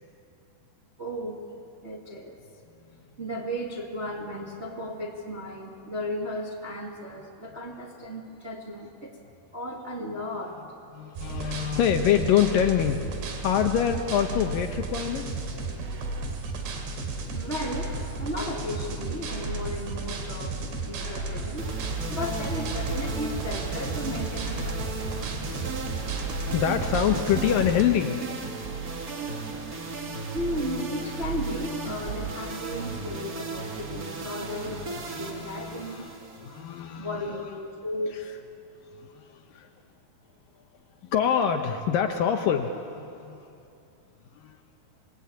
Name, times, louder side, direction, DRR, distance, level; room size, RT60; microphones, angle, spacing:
voice 1, 1.0-1.4 1.8-2.4 3.2-9.2 9.5-10.6 17.3-17.9 18.2-21.7 22.1-25.3 30.3-36.0 37.0-38.3, left 1 dB, 30° right, -1 dB, 1.3 m, -35 dB
voice 2, 10.9-15.4 24.4-24.7 25.9-28.2 34.9-37.4 39.0-39.7 41.0-43.4 44.4-44.6, left 9 dB, 70° left, 6 dB, 2.3 m, -26 dB
sound 1, 11.2-27.8, right 3 dB, 80° right, 4.6 m, -33 dB
sound 2, 21.6-37.0, right 4 dB, 50° right, 1.1 m, -35 dB
28.0 x 20.5 x 8.6 m, 2.6 s
omnidirectional pair, 4.8 m